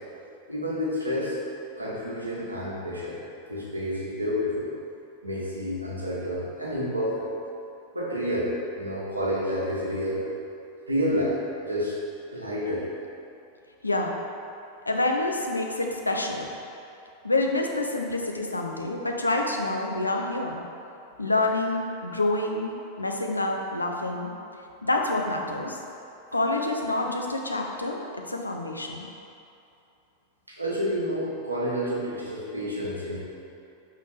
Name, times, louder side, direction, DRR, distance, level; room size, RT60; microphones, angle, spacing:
voice 1, 0.5-1.4 1.8-3.2 3.5-4.7 5.2-7.3 7.9-10.2 10.9-12.0 12.3-12.8 30.5-33.2, equal, 80° right, -5 dB, 1.2 m, -29 dB
voice 2, 13.8-14.1 14.9-16.5 17.2-20.6 21.2-24.3 24.8-25.8 26.3-29.1, left 2 dB, 80° left, 2 dB, 0.6 m, -27 dB
5.6 x 3.8 x 4.9 m, 2.7 s
figure-of-eight pair, 90°, 0 cm